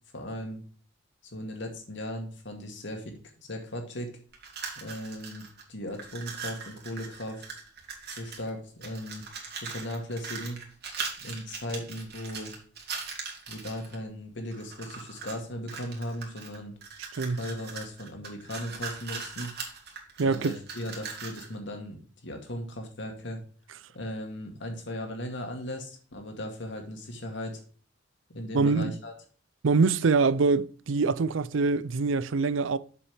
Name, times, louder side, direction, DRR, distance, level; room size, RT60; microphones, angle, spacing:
voice 1, 0.1-0.6 1.2-3.1 3.4-4.1 4.8-5.4 5.7-7.4 8.1-9.2 9.6-10.6 11.2-12.5 13.5-16.7 17.3-19.5 20.2-23.4 23.9-27.6 28.3-29.1, left 1 dB, 65° left, 2.2 m, -37 dB
sound 1, 4.3-5.6 5.9-8.5 8.8-14.0 14.5-15.4 15.7-21.5, right 5 dB, 55° right, 2.3 m, -40 dB
voice 2, 20.2-20.6 28.5-29.0 29.6-32.8, right 4 dB, 80° right, 0.5 m, -24 dB
7.2 x 7.0 x 3.5 m
head